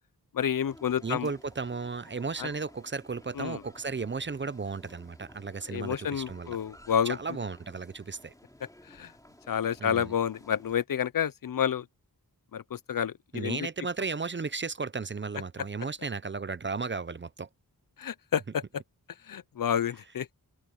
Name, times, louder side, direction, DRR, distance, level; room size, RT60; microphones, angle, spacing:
voice 1, 0.3-1.3 2.4-2.5 3.4-3.6 5.7-7.2 8.9-9.1 9.5-11.9 12.5-13.6 18.0-18.6 19.3-20.3, left 8 dB, 65° left, 0.6 m, -29 dB
sound 1, 0.7-10.8, left 1 dB, 10° left, 3.0 m, -55 dB
voice 2, 1.0-6.6 7.0-8.3 9.8-10.1 13.3-17.5, right 4 dB, 30° right, 0.6 m, -34 dB
open air
wide cardioid pair, 105°, 37 cm